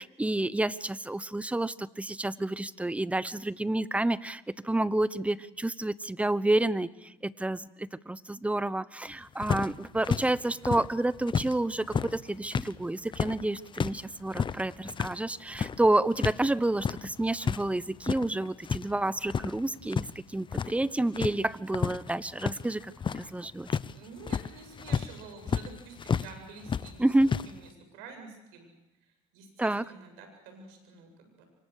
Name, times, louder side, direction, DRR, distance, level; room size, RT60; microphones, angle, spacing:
voice 1, 0.0-23.7 27.0-27.4 29.6-29.8, right 1 dB, 10° right, 17 dB, 1.0 m, -29 dB
sound 1, 9.4-11.5 11.8-16.4 16.7-17.6 17.9-18.9 19.2-20.1 20.4-20.8 21.1-26.3 26.6-27.5, left 6 dB, 30° left, 0.9 m, -32 dB
voice 2, 23.8-28.7 29.0-31.4, right 4 dB, 85° right, 5 dB, 8.0 m, -49 dB
28.0 x 24.5 x 6.7 m, 0.91 s
supercardioid pair, 90°, 15 cm